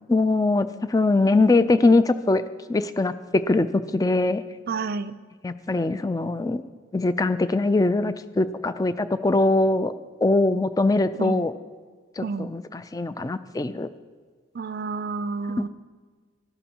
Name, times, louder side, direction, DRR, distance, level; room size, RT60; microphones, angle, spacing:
voice 1, 0.1-2.4 2.7-4.4 5.4-6.6 6.9-9.9 10.2-11.5 12.2-13.9 15.6-15.7, left 2 dB, 20° left, 12 dB, 0.3 m, -22 dB
voice 2, 4.7-5.2 11.2-11.5 12.2-12.5 14.5-15.7, right 4 dB, 50° right, 14 dB, 0.4 m, -30 dB
13.5 x 12.0 x 2.9 m, 1.5 s
head